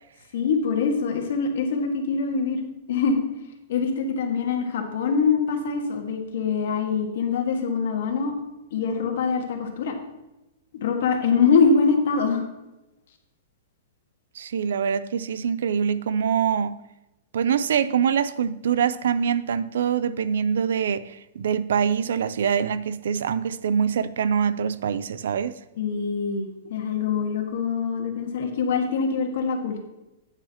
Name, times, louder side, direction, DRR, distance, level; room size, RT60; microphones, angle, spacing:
voice 1, 0.3-2.6 2.9-3.2 3.7-8.3 8.7-9.9 10.8-12.4 25.8-26.4 26.7-29.8, left 5 dB, 60° left, 1.6 m, -24 dB
voice 2, 14.3-16.8 17.3-25.5, right 7 dB, 80° right, 0.5 m, -24 dB
9.8 x 8.9 x 2.9 m
supercardioid pair, 170°, 0 cm